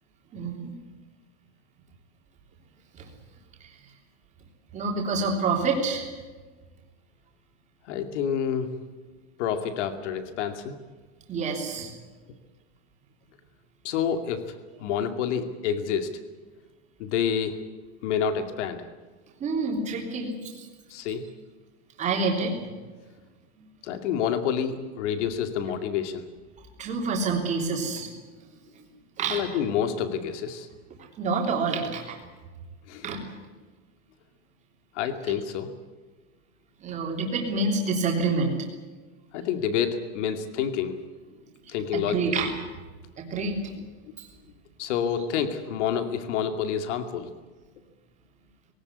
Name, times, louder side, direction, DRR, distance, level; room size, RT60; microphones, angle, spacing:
voice 1, 0.3-0.7 3.0-3.1 3.6-3.7 4.7-6.1 11.3-11.9 19.4-20.5 22.0-22.7 26.8-28.1 28.7-28.8 29.2-29.6 31.2-32.2 33.0-33.2 36.8-38.6 41.9-42.5 43.2-43.7 44.2-44.3, right 4 dB, 20° right, 1 dB, 3.3 m, -27 dB
voice 2, 7.9-8.7 9.4-10.8 13.8-16.1 17.0-17.6 18.0-18.8 20.9-21.3 23.8-26.2 29.3-30.7 32.9-33.1 34.9-35.7 39.3-41.0 41.7-42.3 44.1-44.2 44.8-47.3, left 8 dB, 65° left, 8 dB, 2.4 m, -28 dB
19.5 x 18.0 x 9.7 m, 1.3 s
supercardioid pair, 180°, 38 cm